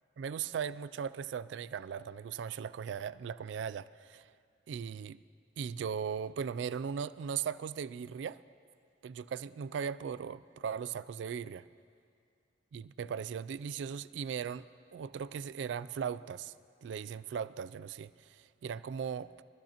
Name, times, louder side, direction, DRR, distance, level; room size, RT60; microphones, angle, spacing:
voice 1, 0.2-4.3 4.7-5.2 5.6-8.4 9.0-11.6 12.7-14.7 14.9-16.5 16.8-19.3, right 7 dB, 75° right, 16 dB, 0.3 m, -38 dB
23.0 x 14.5 x 2.9 m, 2.4 s
head